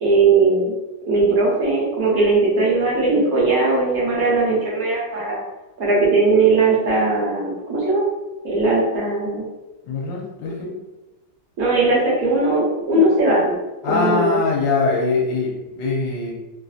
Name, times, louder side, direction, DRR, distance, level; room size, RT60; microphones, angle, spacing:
voice 1, 0.0-0.7 1.1-5.4 5.8-8.0 8.4-9.5 11.6-13.6 13.9-14.4, right 3 dB, 55° right, -5 dB, 1.3 m, -18 dB
voice 2, 9.8-10.8 13.8-16.3, left 3 dB, 75° left, -2 dB, 1.3 m, -22 dB
3.2 x 2.6 x 2.4 m, 1.0 s
omnidirectional pair, 2.0 m